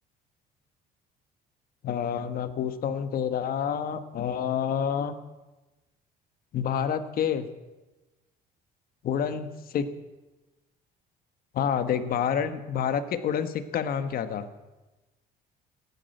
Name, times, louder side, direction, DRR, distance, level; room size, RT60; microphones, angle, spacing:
voice 1, 1.8-5.1 6.5-7.5 9.0-9.9 11.5-14.4, left 8 dB, 60° left, 10 dB, 1.4 m, -28 dB
15.0 x 10.0 x 9.2 m, 1.1 s
cardioid pair, 110°, 17 cm